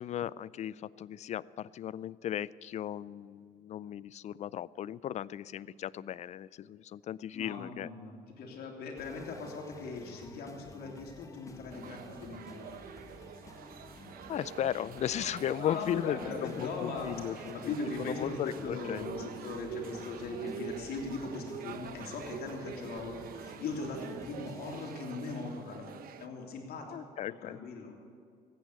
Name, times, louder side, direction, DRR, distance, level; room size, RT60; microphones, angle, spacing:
voice 1, 0.0-7.9 14.3-19.1 26.9-27.6, left 10 dB, 45° left, 20 dB, 0.4 m, -36 dB
voice 2, 7.3-12.8 15.6-26.8 27.3-27.9, left 3 dB, 70° left, 1 dB, 3.1 m, -40 dB
sound 1, 9.0-25.0, left 3 dB, 20° left, 1.2 m, -53 dB
sound 2, 11.7-26.3, right 9 dB, 60° right, 0.8 m, -46 dB
15.0 x 9.3 x 8.2 m, 2.5 s
cardioid pair, 110°, 17 cm